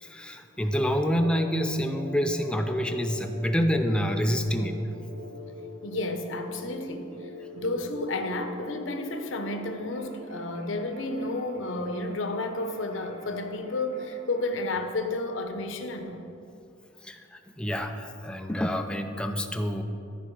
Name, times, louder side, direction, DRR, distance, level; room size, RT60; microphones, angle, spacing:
voice 1, 0.0-4.8 17.0-19.8, equal, 5° left, 0.4 m, -27 dB
sound 1, 0.7-14.6, left 1 dB, 60° right, 1.0 m, -45 dB
voice 2, 5.8-7.2 7.5-16.2, left 2 dB, 85° left, 0.8 m, -31 dB
14.0 x 4.9 x 4.6 m
head